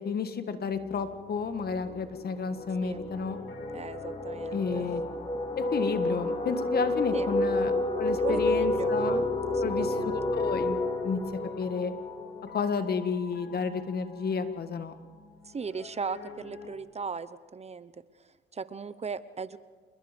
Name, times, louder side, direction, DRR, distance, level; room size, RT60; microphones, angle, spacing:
voice 1, 0.0-3.4 4.5-5.0 5.5-7.7 8.0-9.3 9.6-11.2 11.6-11.9 12.5-14.9, left 5 dB, 50° left, 9 dB, 1.8 m, -31 dB
sound 1, 0.8-1.0 1.3-12.9, left 1 dB, 30° left, 4.8 m, -30 dB
Piano, 3.0-16.8, left 6 dB, 75° left, 2.9 m, -48 dB
voice 2, 3.7-4.9 7.1-7.3 8.2-9.0 9.5-10.2 15.5-17.9 18.5-19.6, right 5 dB, 30° right, 15 dB, 0.9 m, -37 dB
28.0 x 21.0 x 5.3 m, 1.5 s
cardioid pair, 90°, 20 cm